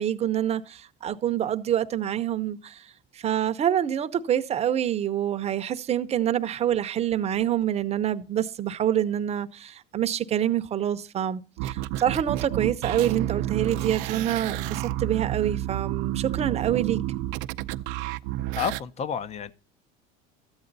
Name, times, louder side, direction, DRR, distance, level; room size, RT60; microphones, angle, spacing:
voice 1, 0.0-17.0, right 10 dB, 35° right, 0.8 m, -26 dB
sound 1, 11.6-18.8, right 15 dB, 75° right, 0.6 m, -30 dB
voice 2, 18.6-19.5, left 7 dB, 35° left, 0.7 m, -30 dB
13.0 x 8.9 x 4.0 m
cardioid pair, 125°, 19 cm